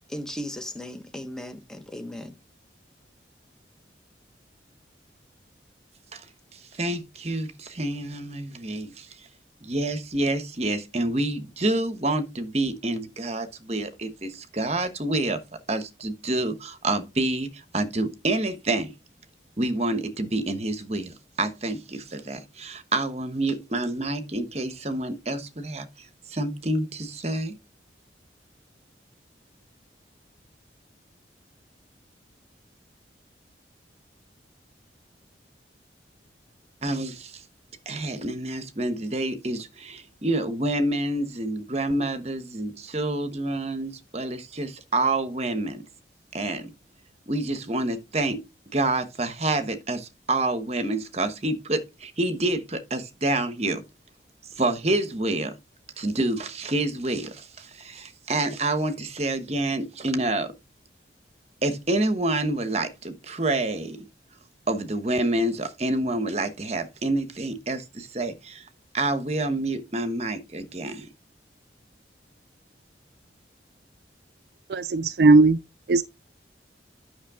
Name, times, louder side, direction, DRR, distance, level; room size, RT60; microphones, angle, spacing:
voice 1, 0.1-2.4, equal, 5° left, 1.2 m, -36 dB
voice 2, 6.5-9.1 9.6-15.4 15.7-18.9 19.6-27.5 36.8-37.4 37.8-45.8 46.3-46.7 47.3-48.4 48.7-53.8 54.6-55.5 56.0-60.5 61.6-64.1 64.7-68.6 68.9-71.1, right 2 dB, 35° right, 1.1 m, -28 dB
voice 3, 74.7-75.6 75.9-76.1, right 3 dB, 60° right, 0.4 m, -17 dB
9.7 x 6.1 x 3.6 m
head